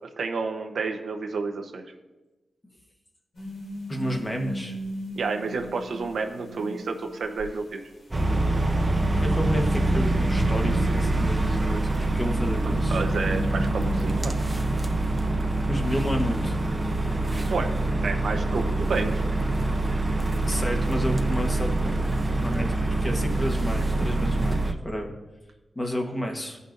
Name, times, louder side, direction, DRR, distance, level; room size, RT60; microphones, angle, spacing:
voice 1, 0.0-1.8 5.1-7.8 12.9-14.4 17.5-17.7 18.0-19.2, right 4 dB, 80° right, 4 dB, 0.8 m, -30 dB
sound 1, 3.3-7.5 8.7-12.3 12.7-14.0, right 1 dB, 75° left, 2.6 m, -35 dB
voice 2, 3.9-4.8 9.1-13.0 15.7-16.6 20.5-21.7 22.4-22.7 23.0-25.1 25.7-26.6, equal, 20° left, 2 dB, 1.1 m, -30 dB
sound 2, 8.1-24.7, right 2 dB, 20° right, 0.6 m, -25 dB
15.5 x 5.5 x 2.5 m, 1.1 s
wide cardioid pair, 130°, 0 cm